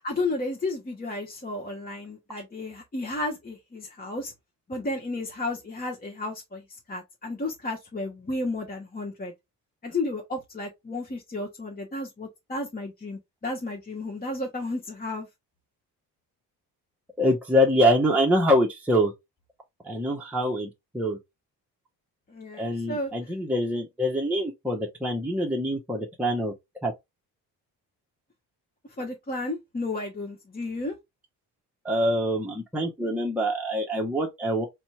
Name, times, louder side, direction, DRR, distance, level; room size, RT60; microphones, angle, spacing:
voice 1, 0.0-4.3 4.7-6.6 6.9-9.3 9.8-15.3 22.3-23.1 29.0-30.9, left 2 dB, 20° left, 1.1 m, -32 dB
voice 2, 17.2-19.1 19.8-21.2 22.6-26.5 26.8-26.9 31.8-34.7, equal, 5° right, 1.1 m, -25 dB
4.2 x 2.2 x 4.3 m
figure-of-eight pair, 40°, 48 cm